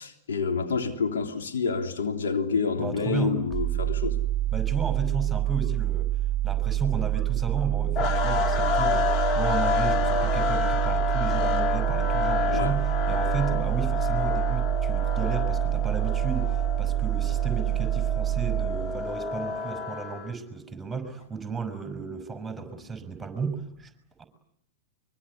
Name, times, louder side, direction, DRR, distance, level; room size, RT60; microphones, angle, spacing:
voice 1, 0.0-4.2 12.5-12.8, left 5 dB, 75° left, 3.5 m, -28 dB
voice 2, 2.8-3.4 4.5-6.1 6.4-23.9 24.2-24.3, right 5 dB, 5° right, 5.7 m, -33 dB
sound 1, 3.5-19.3, right 14 dB, 25° right, 1.5 m, -27 dB
sound 2, 8.0-20.3, left 6 dB, 35° left, 2.2 m, -29 dB
24.0 x 24.0 x 9.8 m
hypercardioid pair, 105°, 0 cm